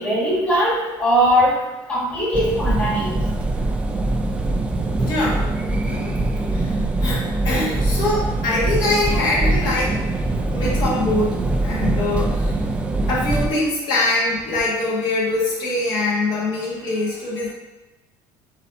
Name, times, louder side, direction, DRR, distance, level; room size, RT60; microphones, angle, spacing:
voice 1, 0.0-1.6 1.9-3.2, equal, 15° left, -6 dB, 1.4 m, -20 dB
sound 1, 2.3-13.5, right 2 dB, 15° right, 0.3 m, -22 dB
voice 2, 4.8-5.4 5.9-6.2 6.5-10.0 10.5-12.6 13.1-17.5, left 2 dB, 55° left, -5 dB, 1.3 m, -23 dB
5.0 x 2.7 x 3.8 m, 1.1 s
cardioid pair, 135°, 9 cm